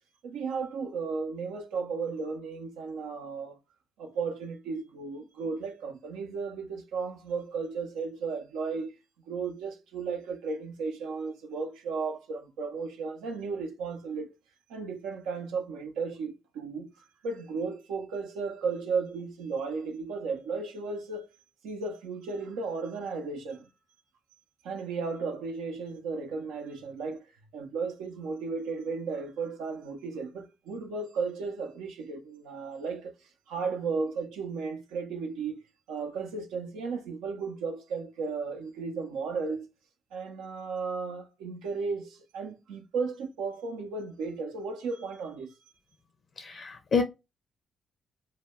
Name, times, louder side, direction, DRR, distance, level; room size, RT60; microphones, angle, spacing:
voice 1, 0.2-3.6 4.0-8.9 9.3-14.4 14.7-21.3 21.6-23.7 24.6-27.3 27.5-33.1 33.5-39.7 40.1-45.6, right 4 dB, 80° right, 0.5 m, -34 dB
voice 2, 46.4-47.0, left 5 dB, 55° left, 0.5 m, -28 dB
2.1 x 2.1 x 3.4 m
supercardioid pair, 50°, 0 cm